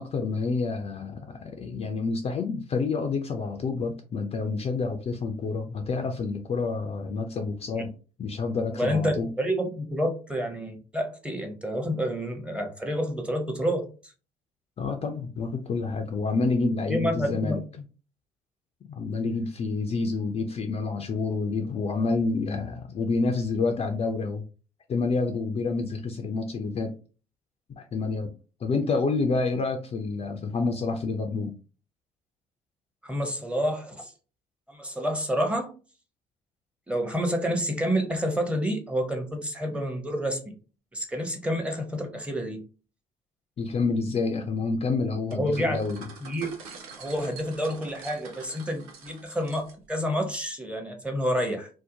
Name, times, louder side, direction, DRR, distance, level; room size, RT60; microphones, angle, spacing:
voice 1, 0.0-7.9 8.2-9.3 14.8-17.6 18.9-24.4 24.9-26.9 27.7-28.3 28.6-31.5 43.6-46.0, left 4 dB, 35° left, 5 dB, 0.4 m, -28 dB
voice 2, 8.7-14.1 16.9-17.6 33.0-34.1 34.7-35.7 36.9-40.5 40.9-42.6 45.4-45.8 46.2-46.5 47.0-51.7, equal, 5° right, 3 dB, 0.7 m, -29 dB
sound 1, 45.3-50.0, right 4 dB, 80° right, 0.5 m, -46 dB
2.7 x 2.0 x 2.7 m, 0.36 s
figure-of-eight pair, 50°, 19 cm